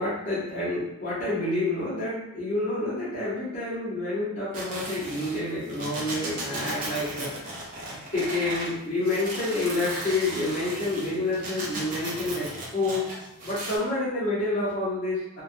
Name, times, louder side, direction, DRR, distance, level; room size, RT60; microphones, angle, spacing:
voice 1, 0.0-7.3 8.1-13.1 13.4-15.4, left 2 dB, 35° left, -12 dB, 0.9 m, -28 dB
sound 1, 4.5-8.7 9.0-13.7, right 1 dB, 35° right, 0.6 m, -36 dB
3.1 x 2.1 x 2.6 m, 0.85 s
head